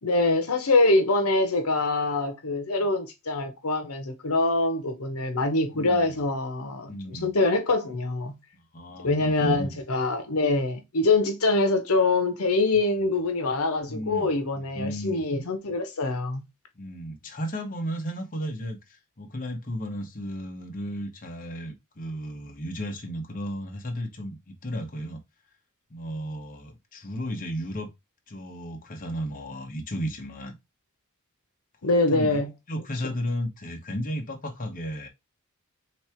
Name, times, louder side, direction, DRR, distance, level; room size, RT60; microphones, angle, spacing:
voice 1, 0.0-8.4 9.0-16.4 31.8-32.5, left 2 dB, 75° left, 0.9 m, -24 dB
voice 2, 5.7-6.2 6.9-7.3 8.7-9.8 13.1-13.2 13.9-15.2 16.8-25.2 25.9-27.9 28.3-30.5 32.1-32.4 32.7-35.1, equal, 40° left, 0.9 m, -34 dB
3.4 x 3.2 x 4.4 m
head